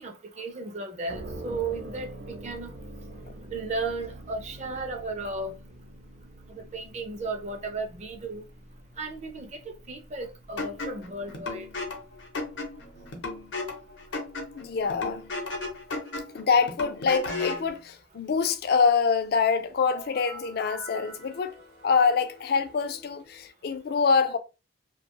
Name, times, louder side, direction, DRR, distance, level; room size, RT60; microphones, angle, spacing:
voice 1, 0.0-2.7 3.5-5.6 6.5-8.5 9.0-11.7, right 3 dB, 40° right, 0.5 m, -35 dB
sound 1, 1.1-15.9, right 1 dB, 90° right, 0.6 m, -46 dB
sound 2, 10.6-17.7, left 3 dB, 90° left, 0.7 m, -35 dB
voice 2, 14.5-15.2 16.3-21.6 21.8-24.4, left 5 dB, 55° left, 0.4 m, -25 dB
sound 3, 19.9-23.5, right 2 dB, 60° right, 0.9 m, -47 dB
2.6 x 2.2 x 2.8 m
head